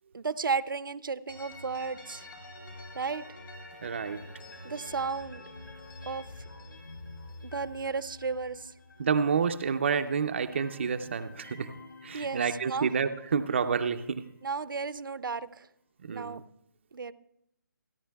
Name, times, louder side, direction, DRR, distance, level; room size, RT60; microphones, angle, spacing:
voice 1, 0.1-2.3 2.9-3.2 4.6-5.4 6.1-6.2 7.4-8.7 12.1-12.9 14.4-15.7 16.1-16.4 16.9-17.1, right 5 dB, 75° right, 15 dB, 0.6 m, -33 dB
sound 1, 1.3-10.0 10.3-14.4, left 2 dB, 75° left, 6.2 m, -48 dB
voice 2, 3.8-4.2 9.0-11.7 12.0-14.2 16.0-16.4, right 6 dB, 35° right, 7 dB, 0.5 m, -29 dB
28.0 x 10.0 x 2.3 m, 0.78 s
hypercardioid pair, 170°, 11 cm